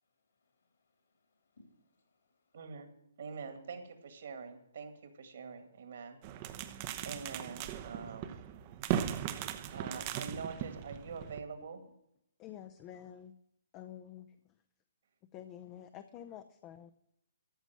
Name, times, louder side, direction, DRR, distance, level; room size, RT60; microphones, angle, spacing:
voice 1, 0.4-2.6, left 2 dB, 65° left, 3 dB, 3.8 m, -67 dB
voice 2, 2.5-2.9 3.2-6.2 7.0-8.3 9.7-11.8, right 5 dB, 60° right, 7 dB, 2.0 m, -45 dB
sound 1, 6.2-11.4, right 10 dB, 35° right, 0.8 m, -38 dB
voice 3, 12.4-13.3 13.7-14.4 15.3-16.9, left 10 dB, 25° left, 8 dB, 0.6 m, -49 dB
13.5 x 6.2 x 7.7 m, 0.80 s
figure-of-eight pair, 135°, 0 cm